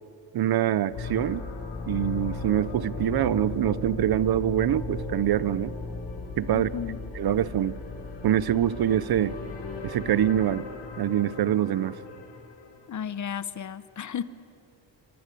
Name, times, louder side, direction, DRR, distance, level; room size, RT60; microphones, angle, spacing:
voice 1, 0.3-1.4 1.9-5.7 6.4-6.7 7.2-7.8 8.2-9.4 9.8-10.7 11.0-12.0, right 11 dB, 55° right, 18 dB, 0.7 m, -25 dB
sound 1, 0.9-12.8, left 3 dB, 70° left, 5.5 m, -36 dB
voice 2, 6.5-7.0 12.9-14.2, left 8 dB, 40° left, 15 dB, 0.9 m, -33 dB
28.0 x 24.0 x 8.4 m, 2.8 s
wide cardioid pair, 175°, 44 cm